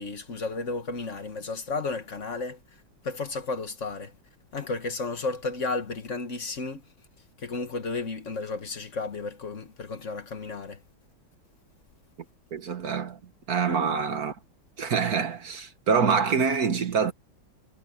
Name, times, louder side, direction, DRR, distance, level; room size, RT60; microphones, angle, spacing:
voice 1, 0.0-2.6 3.0-4.1 4.5-6.8 7.4-10.8, left 3 dB, 40° left, 1.5 m, -33 dB
voice 2, 12.5-13.2 13.5-14.4 14.8-17.1, right 6 dB, 50° right, 1.8 m, -25 dB
omnidirectional pair, 2.1 m